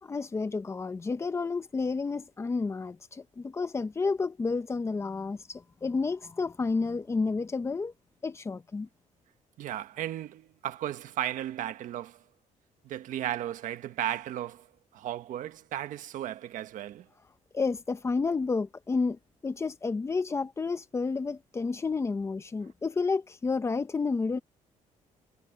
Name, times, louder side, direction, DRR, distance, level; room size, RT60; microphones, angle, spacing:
voice 1, 0.0-7.9 8.2-8.9 17.5-24.4, left 4 dB, 20° left, 1.0 m, -30 dB
voice 2, 9.6-12.2 12.8-14.7 14.9-17.1, right 12 dB, 70° right, 1.4 m, -35 dB
cardioid pair, 160°, 14 cm